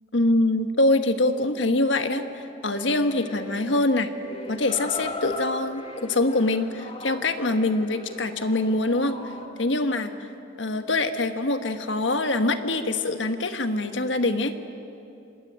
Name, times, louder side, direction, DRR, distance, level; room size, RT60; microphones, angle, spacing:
voice 1, 0.1-4.1 4.5-9.2 9.6-10.1 10.6-14.7, left 2 dB, 85° left, 8 dB, 1.5 m, -24 dB
sound 1, 2.7-9.5, left 2 dB, 30° left, 2.2 m, -39 dB
26.5 x 21.0 x 8.9 m, 2.8 s
head